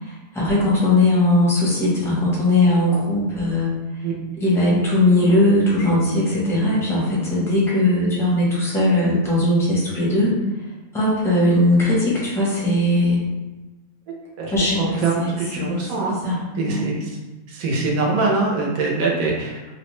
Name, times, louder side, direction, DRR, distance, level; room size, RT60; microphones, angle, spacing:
voice 1, 0.0-3.7 4.4-10.3 10.9-13.2 14.5-15.8 16.1-16.4 16.6-16.9, left 1 dB, 5° left, -7 dB, 0.5 m, -19 dB
voice 2, 14.1-16.2 16.6-17.2 17.5-19.7, right 3 dB, 80° right, -2 dB, 1.1 m, -23 dB
2.8 x 2.1 x 3.0 m, 1.1 s
omnidirectional pair, 1.4 m